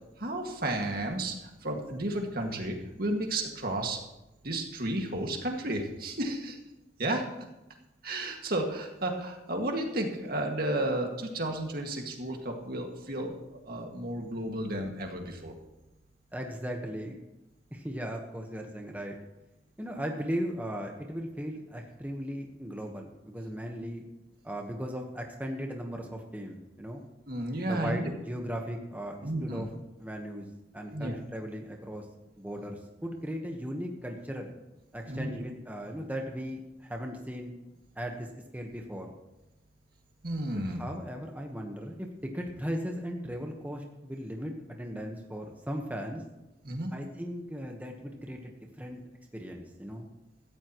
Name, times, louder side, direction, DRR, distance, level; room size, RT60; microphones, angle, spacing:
voice 1, 0.2-4.0 4.4-6.6 7.0-7.3 8.0-15.5 27.3-28.1 29.2-29.6 30.9-31.2 35.1-35.3 40.2-40.8 46.6-46.9, right 1 dB, 60° right, 2 dB, 2.1 m, -32 dB
voice 2, 16.3-17.2 17.7-19.2 19.8-24.1 24.4-27.0 27.6-29.7 30.0-30.5 30.7-32.0 32.4-34.5 34.9-37.5 37.9-38.3 38.5-39.1 40.8-46.2 46.9-49.0 49.3-50.1, equal, 10° right, 1 dB, 1.3 m, -37 dB
17.0 x 14.0 x 3.1 m, 0.96 s
head